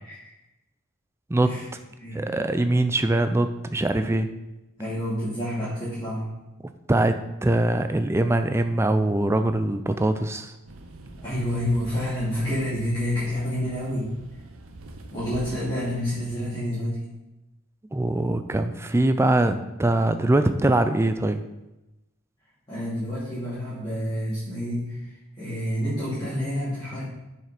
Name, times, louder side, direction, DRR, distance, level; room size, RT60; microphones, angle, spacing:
voice 1, 1.3-1.6 2.1-4.3 6.9-10.5 17.9-21.4, right 1 dB, 10° right, 9 dB, 0.4 m, -22 dB
voice 2, 4.8-6.3 11.2-14.1 15.1-17.0 22.7-25.0 25.4-27.0, equal, 20° left, -13 dB, 2.9 m, -28 dB
sound 1, 10.7-16.5, right 2 dB, 70° right, 0.8 m, -44 dB
7.4 x 5.6 x 5.0 m, 0.98 s
head